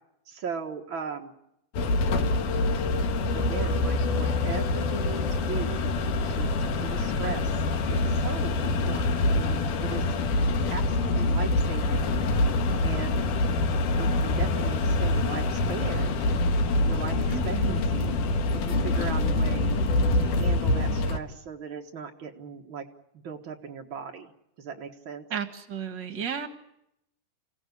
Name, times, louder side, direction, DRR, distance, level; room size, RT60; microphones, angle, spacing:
voice 1, 0.3-1.3 3.3-5.9 6.3-7.6 7.9-10.0 10.7-12.1 12.8-13.2 14.0-16.1 16.9-18.2 18.5-19.8 20.1-22.9 23.1-24.3 24.6-25.2 26.1-26.2, right 6 dB, 80° right, 2 dB, 1.1 m, -38 dB
sound 1, 1.7-21.2, left 2 dB, 60° left, 2.6 m, -25 dB
voice 2, 17.3-17.8 25.3-26.5, right 8 dB, 45° right, 8 dB, 1.4 m, -33 dB
28.5 x 17.0 x 9.5 m, 0.82 s
omnidirectional pair, 4.9 m